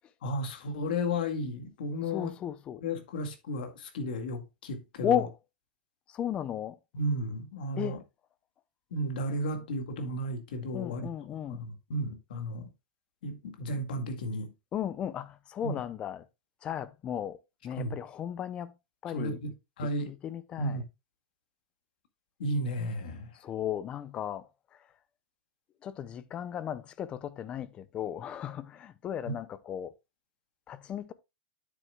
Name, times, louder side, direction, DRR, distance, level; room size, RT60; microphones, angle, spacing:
voice 1, 0.2-2.3 2.8-5.2 6.9-8.0 8.9-11.0 11.5-12.7 13.2-14.5 15.6-15.8 17.8-17.9 19.1-19.5 19.8-20.1 20.6-20.8 22.4-23.3 29.3-29.4, equal, 70° left, 2.0 m, -33 dB
voice 2, 2.1-2.8 5.0-5.3 6.1-6.8 7.8-8.0 10.7-11.6 14.7-16.2 16.6-17.4 17.6-18.7 19.0-19.4 20.1-20.8 23.4-24.5 25.8-29.9 30.7-31.1, left 10 dB, 20° left, 0.5 m, -35 dB
9.3 x 7.7 x 2.3 m
supercardioid pair, 160°, 5 cm